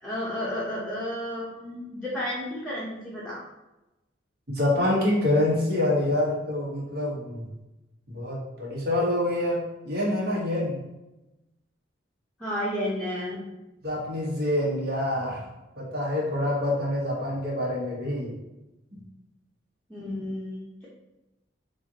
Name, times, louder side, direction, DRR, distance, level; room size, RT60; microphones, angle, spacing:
voice 1, 0.0-3.4 12.4-13.4 19.9-20.9, left 1 dB, 5° left, -9 dB, 0.8 m, -32 dB
voice 2, 4.5-7.5 8.1-10.8 13.8-15.5 15.8-18.4 18.9-19.0, left 1 dB, 50° right, -5 dB, 1.5 m, -26 dB
6.8 x 2.5 x 2.9 m, 0.99 s
head